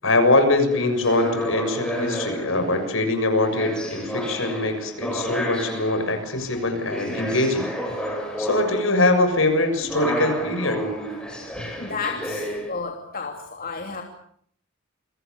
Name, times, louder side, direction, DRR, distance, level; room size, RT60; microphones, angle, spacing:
voice 1, 0.0-7.7 8.0-10.8, left 2 dB, 70° left, 7 dB, 6.9 m, -22 dB
sound 1, 0.5-12.7, equal, 5° left, 7.1 m, -31 dB
voice 2, 11.6-14.0, left 4 dB, 45° left, 2 dB, 3.0 m, -32 dB
29.0 x 24.0 x 7.1 m, 0.64 s
head